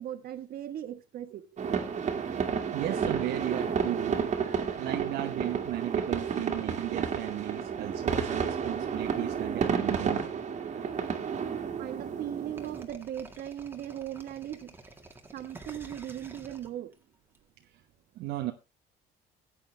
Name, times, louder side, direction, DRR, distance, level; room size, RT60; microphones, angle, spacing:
voice 1, 0.0-1.4 1.7-1.8 11.8-14.8 15.3-16.9, right 11 dB, 65° right, 1.4 m, -38 dB
sound 1, 1.6-12.9, right 6 dB, 45° right, 1.9 m, -31 dB
voice 2, 2.7-10.3 18.2-18.5, right 14 dB, 80° right, 1.0 m, -35 dB
sound 2, 12.6-17.4, right 2 dB, 15° right, 1.8 m, -49 dB
14.5 x 9.0 x 3.3 m
cardioid pair, 110°, 17 cm